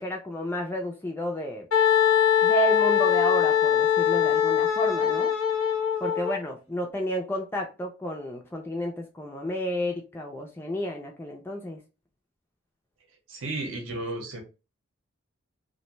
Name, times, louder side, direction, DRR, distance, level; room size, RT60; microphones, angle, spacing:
voice 1, 0.0-1.7 2.4-5.3 6.0-11.8, equal, 10° left, 0.3 m, -31 dB
Wind instrument woodwind instrument, 1.7-6.3, left 8 dB, 85° left, 0.7 m, -22 dB
voice 2, 13.3-14.4, right 2 dB, 70° right, 0.8 m, -33 dB
2.5 x 2.1 x 2.9 m
head